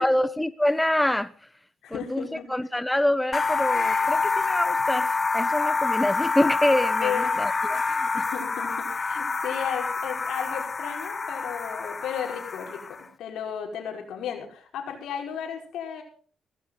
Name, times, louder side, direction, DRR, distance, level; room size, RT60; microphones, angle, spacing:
voice 1, 0.0-1.3 1.9-2.2 2.5-8.1, left 1 dB, 10° left, 1.0 m, -26 dB
voice 2, 1.8-2.5 7.0-7.4 8.1-16.0, left 8 dB, 85° left, 5.5 m, -34 dB
sound 1, 3.3-13.0, left 4 dB, 40° left, 1.3 m, -27 dB
18.0 x 16.0 x 4.1 m
cardioid pair, 70°, 0 cm